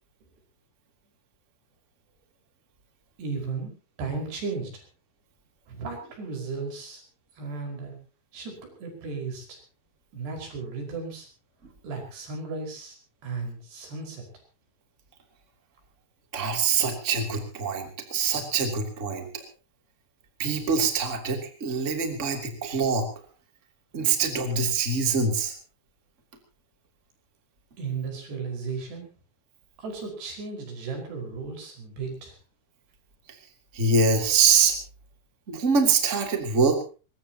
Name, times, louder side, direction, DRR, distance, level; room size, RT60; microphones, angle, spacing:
voice 1, 3.2-3.7 4.0-4.8 5.7-7.0 7.4-7.9 8.3-9.6 10.1-11.3 11.8-13.0 13.2-14.3 27.8-29.1 29.8-32.4, right 4 dB, 80° right, 2 dB, 7.4 m, -35 dB
voice 2, 16.3-19.3 20.4-23.1 23.9-25.5 33.7-34.8 35.5-36.8, right 5 dB, 20° right, 3 dB, 2.8 m, -24 dB
23.5 x 20.0 x 2.9 m, 0.35 s
omnidirectional pair, 4.7 m